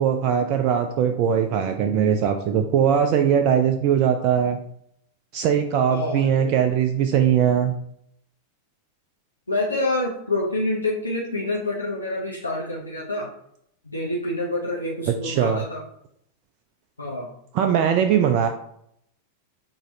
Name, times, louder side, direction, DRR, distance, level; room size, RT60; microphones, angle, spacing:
voice 1, 0.0-4.6 5.3-7.7 15.2-15.6 17.5-18.5, right 8 dB, 40° right, 6 dB, 0.4 m, -20 dB
voice 2, 5.9-6.5 9.5-13.3 13.9-15.8 17.0-17.3, left 2 dB, 80° left, -3 dB, 0.7 m, -27 dB
6.2 x 3.0 x 2.7 m, 0.71 s
figure-of-eight pair, 90°, 0 cm